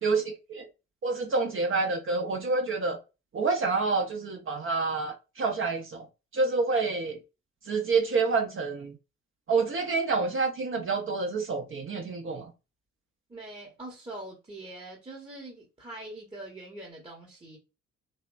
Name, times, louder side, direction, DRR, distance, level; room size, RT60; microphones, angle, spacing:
voice 1, 0.0-0.7 1.0-3.0 3.3-6.0 6.3-7.2 7.7-8.9 9.5-12.5, right 4 dB, 35° right, 0.6 m, -28 dB
voice 2, 13.3-17.6, right 2 dB, 15° right, 0.9 m, -43 dB
2.9 x 2.1 x 2.3 m
figure-of-eight pair, 45°, 37 cm